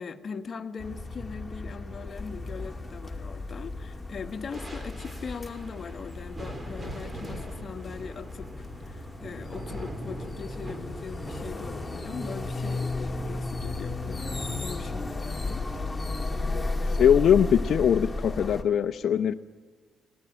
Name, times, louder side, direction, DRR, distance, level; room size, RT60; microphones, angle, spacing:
voice 1, 0.0-15.7, left 6 dB, 45° left, 7 dB, 1.5 m, -40 dB
sound 1, 0.8-18.6, left 2 dB, 15° left, 2.6 m, -34 dB
sound 2, 2.1-17.6, right 1 dB, 25° right, 3.1 m, -44 dB
voice 2, 17.0-19.3, left 9 dB, 65° left, 7 dB, 0.7 m, -22 dB
19.5 x 19.0 x 9.1 m, 1.4 s
cardioid pair, 90°, 0 cm